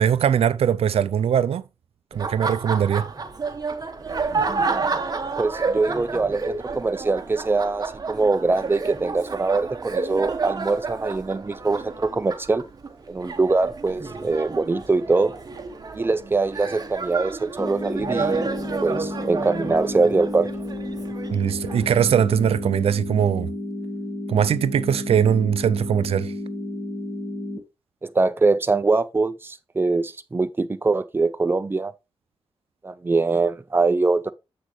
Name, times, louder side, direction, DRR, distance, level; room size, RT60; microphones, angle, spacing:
voice 1, 0.0-1.6 2.1-3.1 21.3-23.5 24.3-26.3, right 8 dB, 90° right, 0.4 m, -21 dB
Laughter, 2.1-22.0, right 4 dB, 40° right, 1.0 m, -30 dB
voice 2, 5.4-12.6 13.1-15.3 15.9-18.5 18.8-20.5 28.0-31.9 32.8-34.3, right 3 dB, 20° right, 0.5 m, -23 dB
sound 1, 17.6-27.6, left 1 dB, 20° left, 1.9 m, -32 dB
7.4 x 6.1 x 3.2 m
wide cardioid pair, 100°, 10 cm